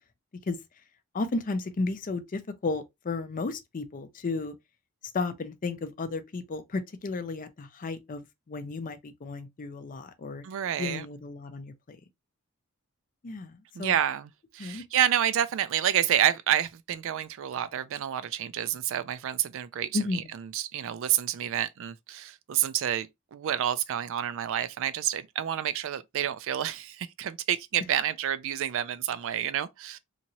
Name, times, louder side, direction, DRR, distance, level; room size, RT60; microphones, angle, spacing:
voice 1, 1.1-4.5 5.1-10.4 10.8-12.0 13.2-13.9 14.6-14.8 19.9-20.3, left 3 dB, 40° left, 0.4 m, -33 dB
voice 2, 10.4-11.1 13.7-30.0, right 10 dB, 60° right, 0.3 m, -29 dB
2.9 x 2.7 x 2.7 m
head